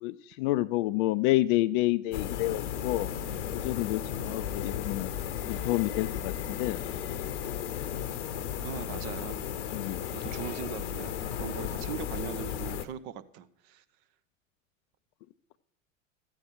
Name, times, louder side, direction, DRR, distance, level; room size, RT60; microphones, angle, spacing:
voice 1, 0.0-3.1 3.6-5.1 5.5-6.8 9.7-10.0, left 17 dB, 40° left, 16 dB, 0.4 m, -29 dB
sound 1, 2.1-12.9, left 9 dB, 65° left, 0.8 m, -35 dB
voice 2, 8.6-9.4 10.1-13.8, right 9 dB, 45° right, 13 dB, 0.7 m, -40 dB
13.0 x 8.6 x 4.6 m, 0.77 s
figure-of-eight pair, 80°, 39 cm